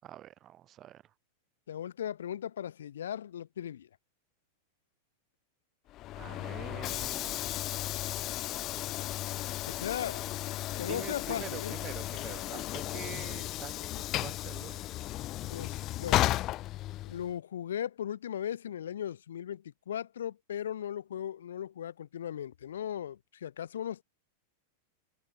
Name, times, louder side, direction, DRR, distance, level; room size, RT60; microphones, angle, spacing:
voice 1, 0.0-1.0 6.2-7.5 10.8-14.9, right 12 dB, 35° right, 7.2 m, -46 dB
voice 2, 1.7-3.9 9.7-10.2 10.8-11.7 15.4-16.3 17.0-24.0, left 10 dB, 90° left, 2.8 m, -37 dB
Train / Sliding door, 5.9-17.3, left 15 dB, 40° left, 0.5 m, -34 dB
open air
hypercardioid pair, 125°, 0 cm